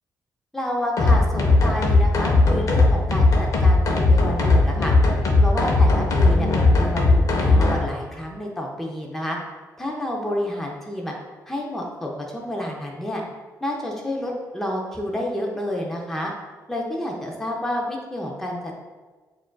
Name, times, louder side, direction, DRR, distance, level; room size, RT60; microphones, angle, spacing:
voice 1, 0.5-4.9 5.4-9.4 9.8-11.1 11.5-13.2 13.6-16.3 16.7-18.6, left 1 dB, 5° left, -1 dB, 0.6 m, -29 dB
sound 1, 1.0-7.8, left 2 dB, 55° left, 0.7 m, -17 dB
7.3 x 2.5 x 2.2 m, 1.3 s
cardioid pair, 115°, 7 cm